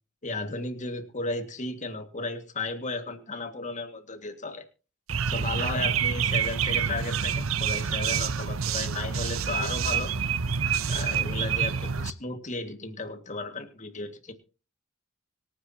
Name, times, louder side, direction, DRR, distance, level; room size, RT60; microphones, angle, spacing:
voice 1, 0.2-4.6 5.3-10.1 10.9-14.3, left 3 dB, 35° left, 7 dB, 2.1 m, -34 dB
sound 1, 5.1-12.1, right 7 dB, 80° right, 0.8 m, -27 dB
25.5 x 10.0 x 2.9 m, 0.34 s
head